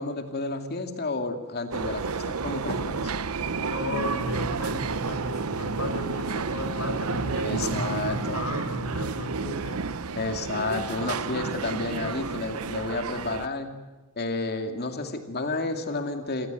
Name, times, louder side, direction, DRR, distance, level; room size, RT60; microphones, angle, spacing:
voice 1, 0.0-3.1 7.4-8.4 10.1-13.7 14.2-16.5, left 2 dB, 50° left, 6 dB, 2.4 m, -31 dB
sound 1, 1.7-13.5, right 4 dB, 85° right, 0.9 m, -31 dB
voice 2, 3.4-9.9, left 1 dB, 70° left, 7 dB, 4.8 m, -35 dB
27.5 x 17.5 x 9.3 m, 1.2 s
head